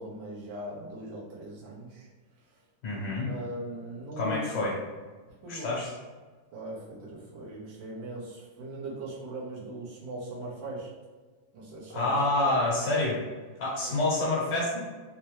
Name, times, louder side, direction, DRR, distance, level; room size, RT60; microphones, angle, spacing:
voice 1, 0.0-2.1 2.5-2.6 3.0-4.4 5.4-5.8 6.5-10.9 11.5-12.6 13.8-14.0, right 1 dB, 75° right, -6 dB, 1.7 m, -40 dB
voice 2, 2.8-3.3 4.2-4.7 5.5-5.9 11.9-13.2 13.6-14.8, left 2 dB, 65° left, -6 dB, 1.5 m, -27 dB
4.2 x 2.2 x 3.0 m, 1.4 s
omnidirectional pair, 2.1 m